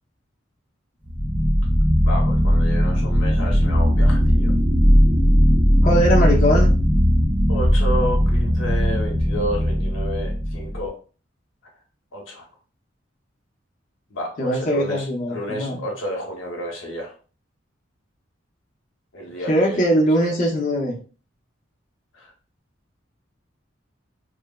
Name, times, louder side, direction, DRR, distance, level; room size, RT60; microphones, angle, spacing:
sound 1, 1.1-10.9, equal, 5° right, 0.3 m, -18 dB
voice 1, 2.0-4.5 7.5-11.0 12.1-12.4 14.1-17.1 19.1-19.9 20.2-20.3 22.2-22.3, equal, 90° left, 0 dB, 0.9 m, -31 dB
voice 2, 5.8-6.7 14.4-15.8 19.4-21.0, equal, 45° left, -3 dB, 0.6 m, -21 dB
3.1 x 2.0 x 2.2 m, 0.36 s
head